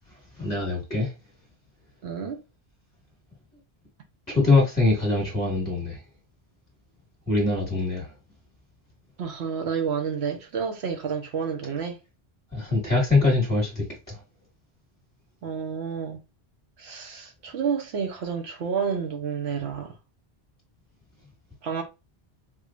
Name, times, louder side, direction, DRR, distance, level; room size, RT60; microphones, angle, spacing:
voice 1, 0.3-1.1 4.3-6.0 7.3-8.1 12.5-14.2, left 3 dB, 5° left, 1.6 m, -23 dB
voice 2, 2.0-2.4 9.2-12.0 15.4-16.2 16.8-20.0 21.6-21.8, right 6 dB, 80° right, 1.1 m, -30 dB
4.8 x 2.4 x 2.5 m
omnidirectional pair, 1.1 m